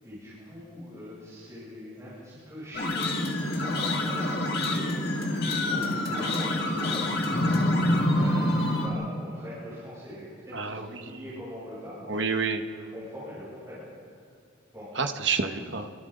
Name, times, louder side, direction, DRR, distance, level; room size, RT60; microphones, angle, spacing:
voice 1, 0.0-2.9 3.4-12.3 12.7-13.8 14.2-14.3 14.7-14.9, equal, 15° right, -10 dB, 7.4 m, -42 dB
sound 1, 2.7-8.9, left 1 dB, 50° left, 2.0 m, -26 dB
voice 2, 10.5-11.2 12.1-12.6 14.9-15.9, right 5 dB, 65° right, 6 dB, 1.3 m, -29 dB
29.5 x 23.0 x 3.9 m, 2.2 s
head